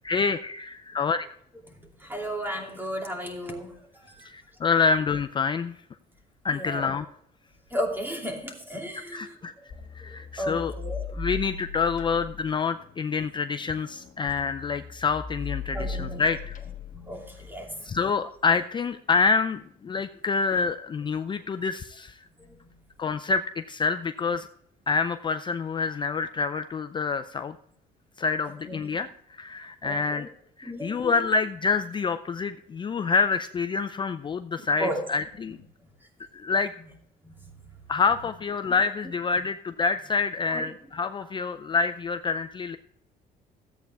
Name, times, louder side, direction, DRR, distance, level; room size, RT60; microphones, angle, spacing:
voice 1, 0.0-1.3 4.2-5.8 6.4-7.1 9.1-9.5 9.9-10.7 11.2-16.6 17.8-22.2 23.0-24.5 24.9-27.5 28.2-30.3 30.6-35.6 36.3-36.7 37.9-42.8, left 5 dB, 30° left, 9 dB, 0.4 m, -27 dB
voice 2, 2.0-4.3 6.5-6.9 7.7-9.4 10.4-11.0 15.7-16.2 16.9-18.0 22.4-22.7 28.7-29.0 29.8-30.3 30.6-31.1 34.8-35.0 37.2-37.6 40.5-40.7, equal, 10° right, 1 dB, 2.7 m, -34 dB
sound 1, 9.7-17.0, left 4 dB, 50° left, 1.3 m, -38 dB
14.0 x 8.4 x 3.4 m, 0.70 s
cardioid pair, 110°, 17 cm